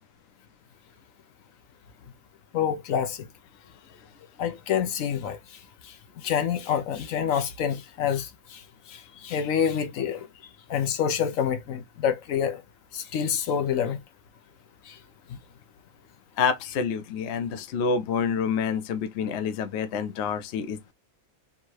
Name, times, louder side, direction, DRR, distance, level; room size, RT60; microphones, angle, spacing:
voice 1, 2.5-3.3 4.4-5.4 6.2-8.6 8.9-10.3 10.7-12.6 12.9-14.0 14.9-15.0 15.3-15.4, left 8 dB, 80° left, 1.1 m, -27 dB
voice 2, 16.4-20.9, left 6 dB, 65° left, 0.8 m, -28 dB
3.6 x 2.8 x 4.6 m
omnidirectional pair, 1.4 m